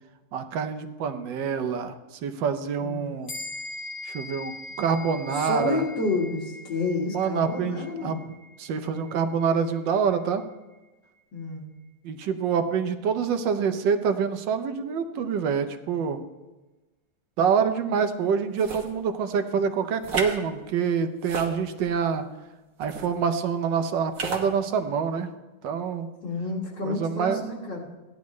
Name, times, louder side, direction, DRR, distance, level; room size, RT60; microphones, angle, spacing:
voice 1, 0.3-1.9 2.2-3.3 4.0-4.5 4.8-5.8 7.1-8.2 8.6-10.4 12.0-16.2 17.4-22.2 22.8-25.3 25.6-26.1 26.8-27.4, right 6 dB, 85° right, 8 dB, 1.4 m, -26 dB
sound 1, 3.3-13.0, left 2 dB, 45° left, 1.3 m, -43 dB
voice 2, 5.3-8.2 11.3-11.6 26.2-27.8, left 3 dB, 80° left, -4 dB, 2.4 m, -29 dB
sound 2, 18.6-18.9 20.0-20.4 21.2-22.0 22.8-23.1 24.1-24.5, right 3 dB, 55° right, 1.5 m, -32 dB
15.5 x 10.5 x 3.1 m, 1.1 s
omnidirectional pair, 1.9 m